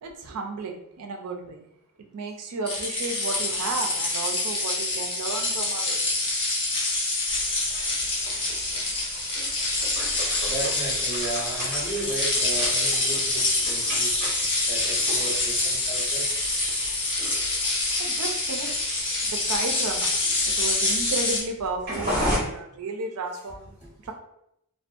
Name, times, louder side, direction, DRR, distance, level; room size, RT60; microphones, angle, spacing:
voice 1, 0.0-1.6 2.1-6.0 18.0-20.1 20.4-23.8 24.0-24.1, right 3 dB, 85° right, 3 dB, 0.4 m, -33 dB
sound 1, 2.7-21.4, left 2 dB, 25° left, 0.6 m, -26 dB
sound 2, 7.3-22.4, equal, 45° right, 1.0 m, -35 dB
voice 2, 7.7-8.0 10.4-14.2 14.6-16.4 23.8-23.9, right 2 dB, ahead, -17 dB, 1.3 m, -35 dB
2.5 x 2.2 x 2.4 m, 0.78 s
head